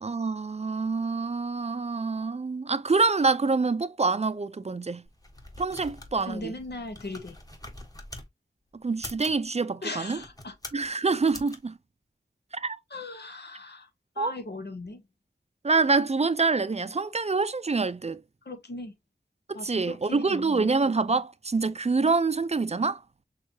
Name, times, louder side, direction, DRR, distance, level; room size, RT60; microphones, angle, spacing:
voice 1, 0.0-5.0 5.6-6.5 8.8-10.2 10.7-11.8 12.5-12.8 14.2-14.3 15.6-18.2 19.5-23.0, right 4 dB, 40° right, 0.4 m, -26 dB
sound 1, 5.1-8.3 8.9-9.4 10.1-10.9 11.3-11.6, left 1 dB, 20° left, 1.4 m, -44 dB
voice 2, 6.3-7.4 9.8-10.6 10.9-11.0 12.9-13.9 14.1-15.0 18.4-18.9 19.5-20.7, left 2 dB, 70° left, 1.1 m, -38 dB
6.3 x 2.4 x 2.8 m
wide cardioid pair, 45°, 18 cm